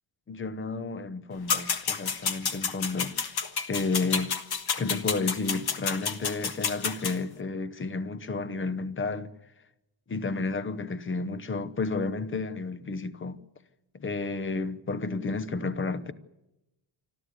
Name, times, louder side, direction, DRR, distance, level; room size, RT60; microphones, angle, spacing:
voice 1, 0.3-3.2 3.7-4.3 4.8-9.3 10.1-13.4 13.9-16.1, left 3 dB, 25° left, 0.9 m, -31 dB
sound 1, 1.5-7.2, left 6 dB, 50° left, 1.6 m, -30 dB
26.0 x 13.5 x 9.5 m
wide cardioid pair, 165°, 47 cm